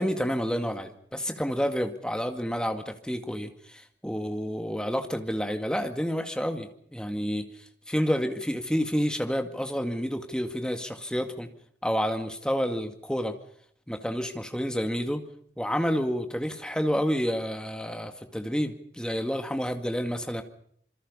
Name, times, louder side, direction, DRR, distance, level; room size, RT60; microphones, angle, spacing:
voice 1, 0.0-7.5 7.9-11.5 11.8-13.3 13.9-15.2 15.6-20.4, equal, 5° left, 6 dB, 2.1 m, -29 dB
27.0 x 25.0 x 5.6 m, 0.66 s
head